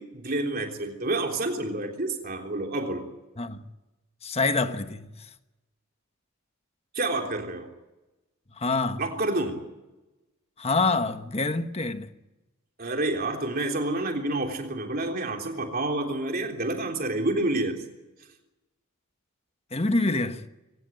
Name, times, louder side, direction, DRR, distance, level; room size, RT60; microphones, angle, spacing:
voice 1, 0.0-3.0 6.9-7.7 9.0-9.6 12.8-17.8, right 2 dB, 40° right, 3.5 m, -28 dB
voice 2, 4.2-5.1 8.6-9.0 10.6-12.1 19.7-20.4, left 3 dB, 30° left, 1.2 m, -26 dB
23.5 x 18.5 x 9.2 m
head